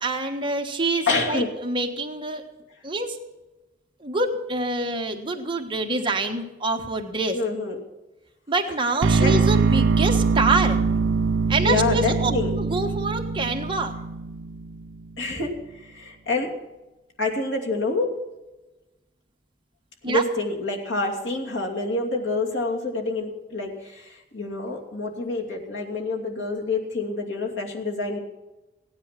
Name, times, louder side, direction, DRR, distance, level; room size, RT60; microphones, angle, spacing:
voice 1, 0.0-2.4 2.8-3.2 4.0-7.4 8.5-10.8 11.5-12.3 12.6-13.9 20.0-20.2, right 2 dB, 25° right, 3 dB, 1.3 m, -26 dB
voice 2, 1.1-1.5 7.3-7.8 9.2-9.4 11.6-12.5 15.2-16.5 17.2-18.1 20.1-28.2, left 3 dB, 80° left, 0 dB, 2.7 m, -27 dB
sound 1, 9.0-15.0, right 4 dB, 80° right, 0.5 m, -23 dB
16.5 x 10.0 x 5.9 m, 1.1 s
head